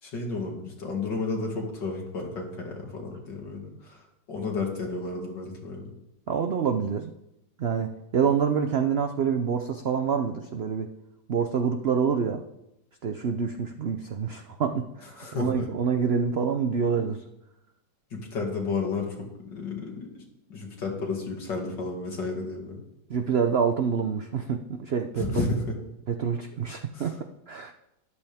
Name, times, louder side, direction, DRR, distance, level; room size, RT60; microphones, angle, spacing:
voice 1, 0.0-4.0 4.3-5.9 15.2-15.7 18.1-20.2 20.5-22.8 25.2-25.8 26.9-27.2, left 3 dB, 75° left, 0 dB, 2.9 m, -32 dB
voice 2, 6.3-7.1 7.6-10.9 11.3-12.4 13.0-15.1 15.4-17.2 23.1-25.4 26.1-27.1 27.5-27.7, right 6 dB, 80° right, 6 dB, 0.5 m, -26 dB
13.0 x 11.5 x 3.5 m, 0.87 s
omnidirectional pair, 2.0 m